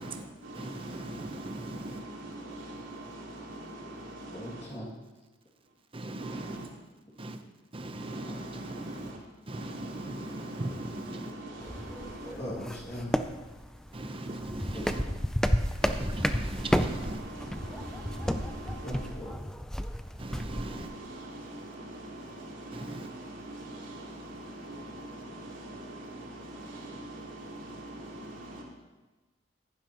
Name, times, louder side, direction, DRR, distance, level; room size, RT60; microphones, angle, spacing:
voice 1, 0.0-4.7 5.6-5.7 6.2-6.7 7.1-7.3 8.0-9.2 9.5-12.4 14.3-14.4 14.8-15.1 16.6-19.1 20.0-28.6, right 1 dB, 75° right, 3.1 m, -43 dB
voice 2, 0.5-2.0 5.9-6.7 7.2-7.4 7.7-9.1 9.5-11.3 13.9-15.0 15.8-17.2 20.2-20.9 22.7-23.1, right 1 dB, 30° right, 0.8 m, -39 dB
voice 3, 4.3-4.8 12.0-13.1 14.7-14.9 18.8-19.4, equal, 35° left, 2.2 m, -39 dB
sound 1, 11.6-20.8, equal, 5° left, 0.4 m, -32 dB
15.0 x 11.0 x 3.0 m
head